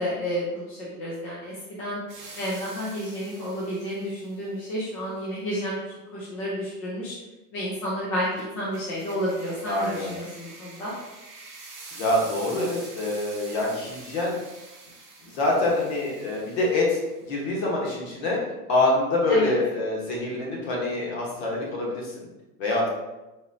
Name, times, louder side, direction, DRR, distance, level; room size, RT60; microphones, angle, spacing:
voice 1, 0.0-2.0 2.3-5.8 6.1-7.1 7.5-10.9 19.3-19.5, equal, 25° left, -6 dB, 0.5 m, -31 dB
sound 1, 2.1-4.4 8.4-17.3, right 3 dB, 35° right, 1.1 m, -46 dB
voice 2, 9.7-10.1 11.9-14.4 15.2-18.4 18.7-22.3 22.6-22.9, left 2 dB, 45° left, -3 dB, 1.3 m, -25 dB
4.2 x 2.8 x 2.7 m, 1.0 s
supercardioid pair, 160°, 46 cm